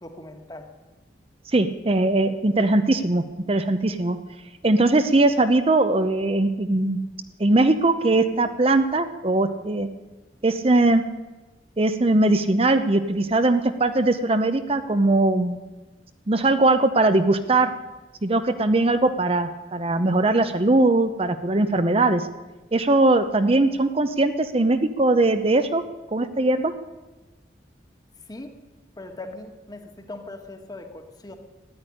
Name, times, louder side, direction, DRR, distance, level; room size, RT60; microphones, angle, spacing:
voice 1, 0.0-0.7 28.3-28.5 29.0-31.4, left 2 dB, 20° left, 5 dB, 1.6 m, -39 dB
voice 2, 1.5-4.2 4.6-7.0 7.4-9.9 10.4-11.0 11.8-15.6 16.3-17.7 18.2-22.3 22.7-25.8 26.1-26.7, right 2 dB, 35° right, 9 dB, 0.7 m, -20 dB
13.5 x 10.5 x 9.9 m, 1.2 s
head